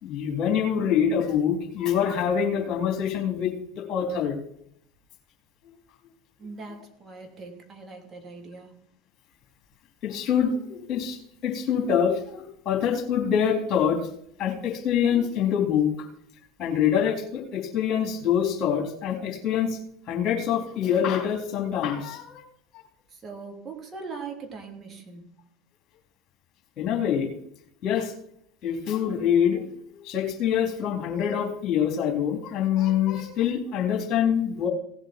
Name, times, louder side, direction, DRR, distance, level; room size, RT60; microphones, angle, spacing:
voice 1, 0.0-4.4 10.0-14.1 14.4-16.1 16.6-19.8 20.1-22.4 26.8-27.3 27.8-28.1 28.6-34.7, left 8 dB, 40° left, 3 dB, 3.6 m, -25 dB
voice 2, 6.4-8.7 23.1-25.3, right 4 dB, 30° right, 2 dB, 3.5 m, -41 dB
17.0 x 7.9 x 4.5 m, 0.67 s
figure-of-eight pair, 75°, 0 cm